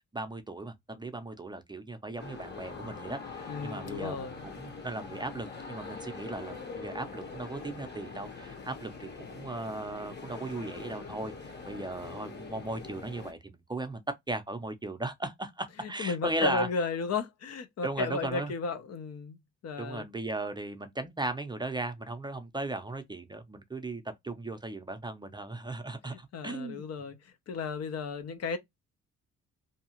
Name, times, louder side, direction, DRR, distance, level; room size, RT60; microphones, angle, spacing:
voice 1, 0.1-11.3 11.7-13.4 13.7-14.0 14.3-16.7 17.8-18.5 19.8-26.9, right 2 dB, 15° right, 0.5 m, -37 dB
sound 1, 2.2-13.3, left 4 dB, 35° left, 1.0 m, -43 dB
voice 2, 3.5-4.5 15.8-19.4 19.6-20.0 26.3-27.2 27.5-28.6, left 4 dB, 55° left, 0.6 m, -34 dB
2.7 x 2.3 x 2.8 m
cardioid pair, 90°, 30 cm